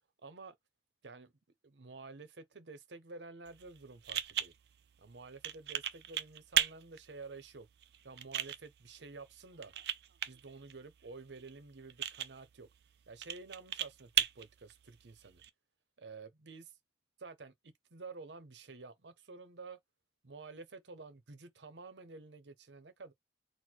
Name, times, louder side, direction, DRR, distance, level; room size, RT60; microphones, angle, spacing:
voice 1, 0.2-0.5 1.0-1.3 1.6-4.5 5.0-7.7 8.0-9.7 10.3-12.7 13.1-15.4 16.0-16.7 17.2-19.8 20.2-23.1, right 3 dB, 80° right, 0.8 m, -50 dB
sound 1, 3.5-15.5, right 10 dB, 65° right, 0.4 m, -39 dB
4.3 x 2.2 x 4.5 m
head